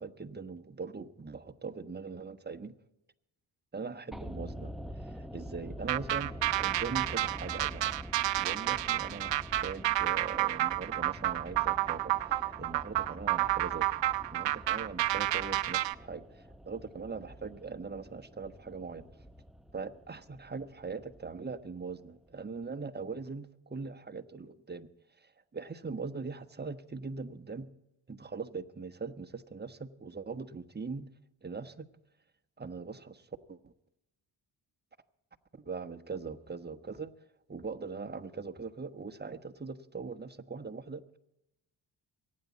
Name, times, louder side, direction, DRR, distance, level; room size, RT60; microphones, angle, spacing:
voice 1, 0.0-2.7 3.7-7.9 8.4-13.9 14.3-19.1 19.7-24.9 25.2-27.7 28.1-31.1 31.4-31.9 32.6-33.7 35.7-37.1 37.5-41.2, right 4 dB, 20° right, 8 dB, 1.2 m, -41 dB
sound 1, 4.1-22.3 22.6-22.7, equal, ahead, 0.8 m, -47 dB
sound 2, 5.9-16.0, right 15 dB, 65° right, 0.7 m, -30 dB
24.0 x 9.7 x 4.1 m, 0.85 s
cardioid pair, 70°, 46 cm